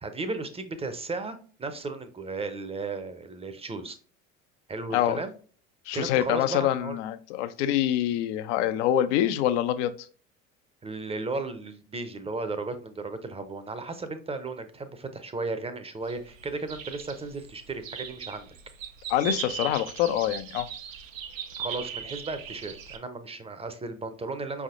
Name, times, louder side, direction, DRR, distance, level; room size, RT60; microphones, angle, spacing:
voice 1, 0.0-4.0 4.7-5.3 5.9-7.0 10.8-18.5 21.6-24.6, right 3 dB, 15° right, 0.6 m, -35 dB
voice 2, 5.9-10.1 19.1-20.7, left 11 dB, 65° left, 0.6 m, -25 dB
sound 1, 16.0-23.0, right 7 dB, 85° right, 0.6 m, -38 dB
5.3 x 3.5 x 2.5 m
figure-of-eight pair, 65°, 39 cm